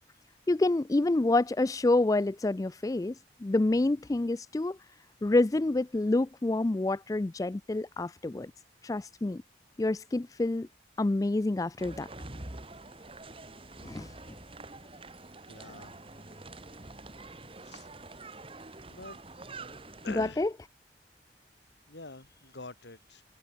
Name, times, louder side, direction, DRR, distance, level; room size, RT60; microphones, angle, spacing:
voice 1, 0.5-3.1 3.4-4.8 5.2-8.5 8.8-9.4 9.8-10.7 11.0-12.1 13.8-14.1 20.1-20.5, left 2 dB, 20° left, 0.3 m, -27 dB
sound 1, 11.8-20.2, right 2 dB, 30° right, 2.4 m, -46 dB
voice 2, 15.5-15.9 17.6-17.9 18.9-19.2 20.0-20.4 21.9-23.2, left 3 dB, 80° left, 2.8 m, -45 dB
open air
head